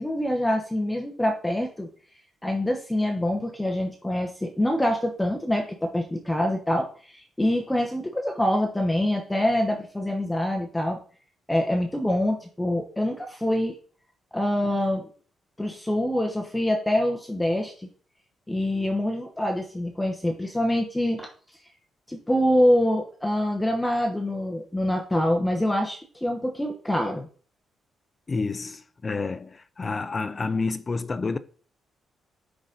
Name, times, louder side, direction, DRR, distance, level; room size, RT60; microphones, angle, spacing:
voice 1, 0.0-1.9 2.4-11.0 11.5-13.7 14.3-15.1 15.6-17.9 18.5-21.3 22.1-27.3, left 1 dB, 5° left, 0.9 m, -25 dB
voice 2, 28.3-31.4, left 4 dB, 25° left, 0.4 m, -29 dB
9.7 x 3.9 x 3.9 m
cardioid pair, 145°, 0 cm